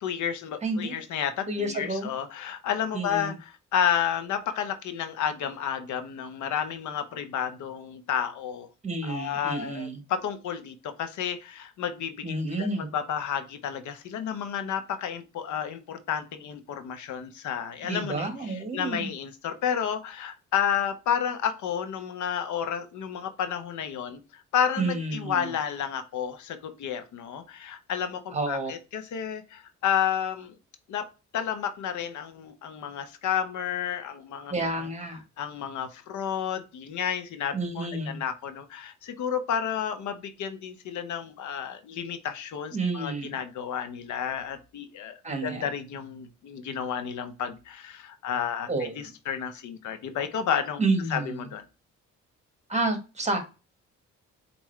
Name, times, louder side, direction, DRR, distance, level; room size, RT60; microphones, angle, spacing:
voice 1, 0.0-8.7 9.0-30.6 30.9-31.0 31.3-34.9 35.4-50.8 51.1-51.6, left 8 dB, 75° left, 0.7 m, -31 dB
voice 2, 0.6-1.0 1.5-2.1 2.9-3.3 8.8-10.0 12.2-12.9 17.8-19.1 24.8-25.5 28.3-28.7 34.5-35.2 37.5-38.2 42.7-43.3 45.2-45.6 48.7-49.0 50.8-51.4 52.7-53.4, right 2 dB, 20° right, 1.3 m, -30 dB
4.7 x 2.5 x 3.2 m
cardioid pair, 90°, 30 cm